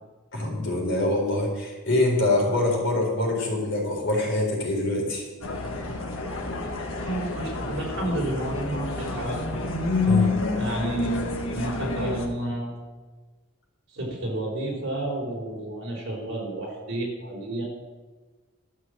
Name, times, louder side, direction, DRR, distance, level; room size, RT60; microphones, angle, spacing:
voice 1, 0.3-5.2 10.1-10.3, left 2 dB, 65° left, -1 dB, 4.0 m, -24 dB
sound 1, 5.4-12.3, left 3 dB, 85° left, 1.6 m, -28 dB
voice 2, 7.0-9.4 10.5-11.1 11.5-12.8 13.9-17.6, right 1 dB, 65° right, -1 dB, 4.1 m, -31 dB
12.0 x 6.6 x 7.5 m, 1.3 s
head